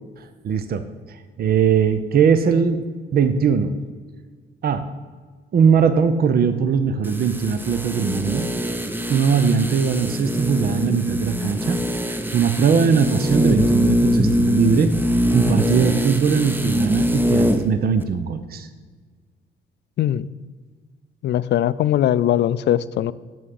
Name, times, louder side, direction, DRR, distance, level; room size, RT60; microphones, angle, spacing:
voice 1, 0.4-2.8 3.1-3.8 4.6-4.9 5.5-8.5 9.1-11.8 12.1-15.0 15.3-18.7, right 6 dB, 50° right, 11 dB, 0.7 m, -20 dB
sound 1, 7.0-17.7 18.0-18.1, equal, 10° right, 0.7 m, -23 dB
voice 2, 21.2-23.1, left 11 dB, 60° left, 17 dB, 0.4 m, -20 dB
7.0 x 6.2 x 7.7 m, 1.5 s
cardioid pair, 90°, 20 cm